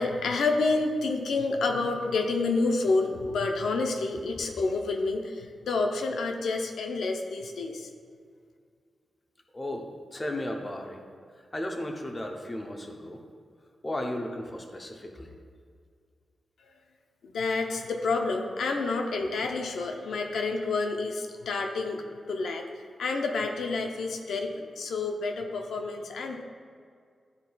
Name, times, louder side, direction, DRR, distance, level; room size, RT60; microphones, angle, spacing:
voice 1, 0.0-7.9 17.2-22.6 23.0-26.4, left 3 dB, 85° left, 3 dB, 0.5 m, -29 dB
voice 2, 9.5-11.0 11.5-13.2 13.8-15.3, left 1 dB, 15° left, 2 dB, 0.5 m, -35 dB
11.5 x 4.1 x 2.2 m, 2.1 s
wide cardioid pair, 165°, 0 cm